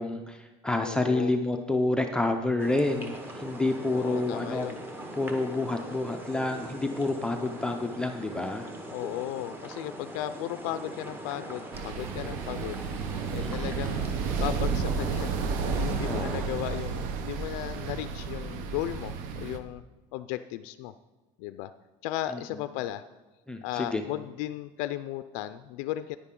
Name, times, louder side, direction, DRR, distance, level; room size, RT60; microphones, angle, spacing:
voice 1, 0.0-4.7 5.2-8.7 13.4-13.7 16.0-16.5 22.3-22.4 23.5-24.0, left 2 dB, 5° left, 3 dB, 0.4 m, -29 dB
voice 2, 0.8-1.3 3.9-4.8 8.9-12.9 13.3-14.1 14.4-15.4 15.6-19.8 20.1-20.9 21.4-21.7 22.0-23.0 23.6-26.2, left 14 dB, 75° left, 12 dB, 0.4 m, -35 dB
sound 1, 2.6-16.5, right 1 dB, 15° right, 1.0 m, -41 dB
sound 2, 11.7-19.6, right 5 dB, 65° right, 0.8 m, -32 dB
9.9 x 9.7 x 3.7 m, 1.2 s
cardioid pair, 165°, 15 cm